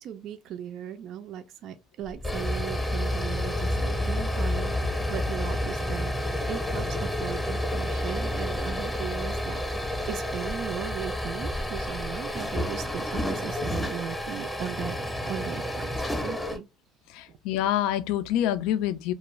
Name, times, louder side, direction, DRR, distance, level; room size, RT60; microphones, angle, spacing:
voice 1, 0.0-15.0 15.3-15.9 16.2-16.7 17.3-17.4, right 9 dB, 60° right, 0.3 m, -37 dB
sound 1, 2.0-16.6, left 1 dB, 10° left, 0.7 m, -30 dB
voice 2, 17.1-19.1, left 11 dB, 85° left, 0.3 m, -26 dB
2.4 x 2.2 x 3.0 m
cardioid pair, 125°, 0 cm